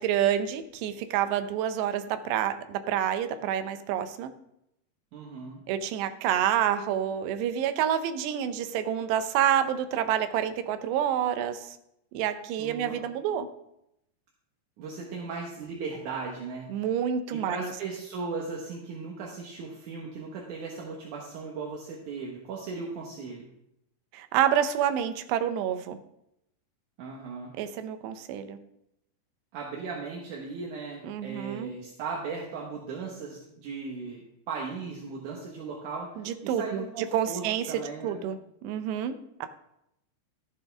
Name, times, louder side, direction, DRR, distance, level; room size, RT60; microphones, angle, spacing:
voice 1, 0.0-4.3 5.7-11.8 12.1-13.5 16.7-17.7 24.1-26.0 27.6-28.6 31.0-31.7 36.3-36.8 37.1-38.4 38.6-39.1 39.4-39.5, right 10 dB, 85° right, 9 dB, 2.9 m, -28 dB
voice 2, 5.1-5.6 12.6-13.0 14.8-16.9 17.3-23.5 27.0-27.5 29.5-38.2, right 4 dB, 65° right, -2 dB, 2.2 m, -37 dB
14.5 x 8.4 x 3.5 m, 0.81 s
omnidirectional pair, 4.9 m